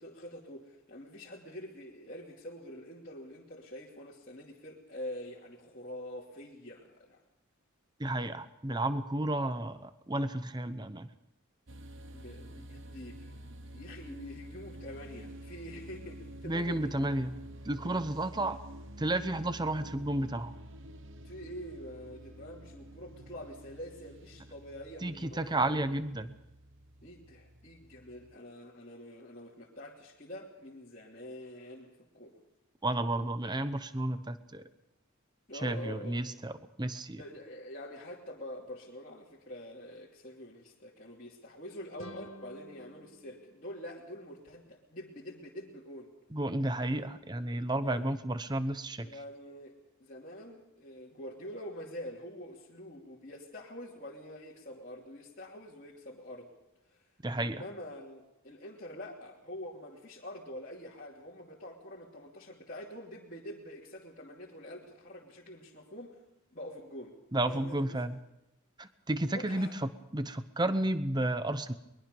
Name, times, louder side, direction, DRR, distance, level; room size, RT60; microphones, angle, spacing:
voice 1, 0.0-7.2 12.1-17.4 21.2-25.8 27.0-31.9 32.1-32.4 35.5-36.3 37.2-46.1 47.0-47.1 47.8-48.1 49.0-49.7 50.0-56.5 56.9-57.0 57.4-66.1 66.5-67.2 67.4-68.1 69.3-69.7, left 1 dB, 35° left, -7 dB, 2.9 m, -46 dB
voice 2, 8.0-11.1 16.4-17.3 17.6-18.6 19.0-20.5 25.0-26.3 32.8-34.6 35.6-36.5 36.8-37.2 46.3-49.1 57.2-57.6 67.3-68.2 68.8-71.7, right 1 dB, 20° right, 11 dB, 0.9 m, -32 dB
sound 1, 11.7-28.4, right 1 dB, 60° right, 1.1 m, -49 dB
sound 2, 42.0-44.7, equal, 60° left, 1.8 m, -52 dB
22.5 x 21.5 x 5.4 m, 0.89 s
head